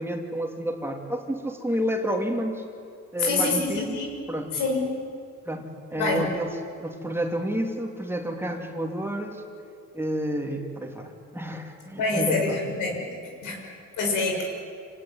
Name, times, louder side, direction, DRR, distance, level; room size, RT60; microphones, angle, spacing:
voice 1, 0.0-2.6 3.1-4.0 4.3-4.6 5.4-6.5 6.8-9.4 9.9-12.6, equal, 10° right, 2 dB, 3.0 m, -30 dB
voice 2, 3.2-4.1 4.5-4.9 6.0-6.3 12.0-13.1 13.4-14.4, left 3 dB, 90° left, 1 dB, 6.1 m, -26 dB
26.5 x 18.5 x 9.6 m, 2.4 s
cardioid pair, 90°, 30 cm